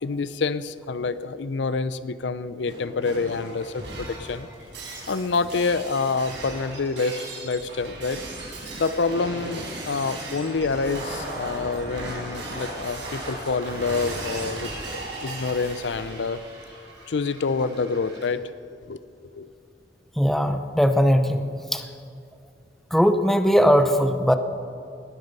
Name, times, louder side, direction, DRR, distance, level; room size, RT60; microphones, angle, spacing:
voice 1, 0.0-4.5 5.1-8.2 8.8-16.4 17.1-18.5 18.8-19.0 19.3-19.5, left 4 dB, 75° left, 14 dB, 0.5 m, -27 dB
Shatter, 2.7-18.3, right 1 dB, 80° right, 4.6 m, -37 dB
voice 2, 20.2-21.8 22.9-24.3, equal, ahead, 8 dB, 0.7 m, -19 dB
19.0 x 11.5 x 5.4 m, 2.4 s
head